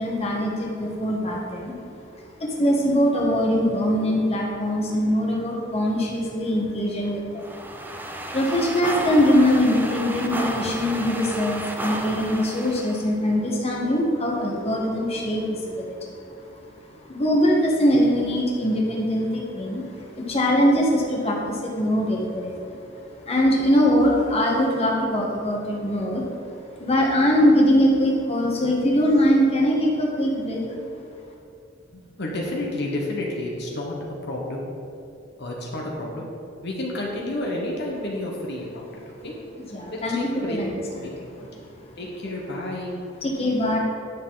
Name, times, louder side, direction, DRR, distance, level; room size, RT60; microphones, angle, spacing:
voice 1, 0.0-1.7 2.4-7.4 8.3-16.2 17.1-22.8 23.3-26.2 26.8-30.6 39.7-40.2 40.5-40.7 41.0-41.1 43.2-43.8, equal, 35° left, -2 dB, 1.4 m, -22 dB
sound 1, 7.4-13.1, right 1 dB, 10° right, 0.6 m, -32 dB
voice 2, 31.9-33.9 34.2-34.6 35.4-36.2 36.6-39.3 39.9-40.6 40.9-42.9, left 1 dB, 60° left, -2 dB, 1.2 m, -31 dB
10.0 x 6.6 x 3.9 m, 2.7 s
head